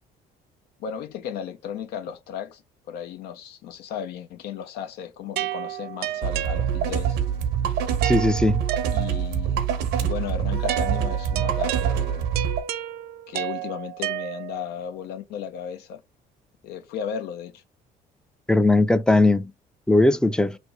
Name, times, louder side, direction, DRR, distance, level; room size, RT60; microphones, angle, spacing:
voice 1, 0.8-2.6 2.9-7.2 8.9-9.6 10.0-12.2 13.3-16.0 16.6-17.6, left 8 dB, 75° left, 0.5 m, -35 dB
sound 1, 5.4-7.1 8.0-9.4 10.7-14.8, right 13 dB, 70° right, 0.4 m, -32 dB
sound 2, 6.2-12.6, right 8 dB, 85° right, 0.9 m, -25 dB
voice 2, 8.0-8.6 18.5-19.5 19.9-20.6, left 2 dB, 5° left, 0.4 m, -19 dB
3.3 x 2.5 x 4.4 m
cardioid pair, 110°, 17 cm